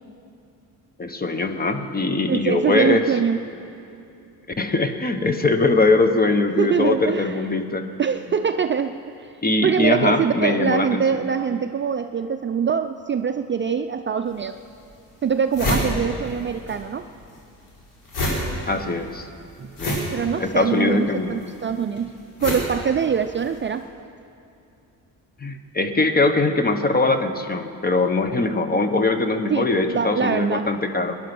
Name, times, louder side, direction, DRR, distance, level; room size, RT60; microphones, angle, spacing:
voice 1, 1.0-3.1 4.6-7.9 9.4-11.0 18.7-19.3 19.8-20.0 20.4-21.4 25.4-31.2, left 3 dB, 25° left, 8 dB, 1.0 m, -21 dB
voice 2, 2.3-3.4 6.6-7.4 8.0-9.3 9.6-14.6 15.2-17.1 19.6-19.7 20.1-22.1 22.4-23.8 29.5-30.7, right 7 dB, 30° right, 7 dB, 0.4 m, -23 dB
sound 1, 14.3-14.4 14.9-15.0 15.2-16.8 17.0-23.6, left 1 dB, 85° left, 4.2 m, -28 dB
20.0 x 11.0 x 6.0 m, 2.7 s
cardioid pair, 110°, 39 cm